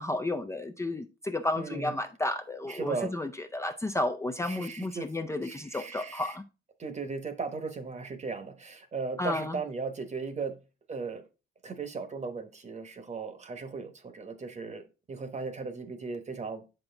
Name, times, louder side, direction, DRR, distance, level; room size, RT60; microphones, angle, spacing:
voice 1, 0.0-6.4 9.2-9.6, left 2 dB, 15° left, 0.5 m, -32 dB
voice 2, 1.6-2.0 2.6-3.1 4.4-5.1 5.4-6.4 6.8-10.6 10.9-11.2 11.6-16.6, right 4 dB, 35° right, 1.1 m, -37 dB
6.9 x 5.4 x 3.4 m
cardioid pair, 90°, 20 cm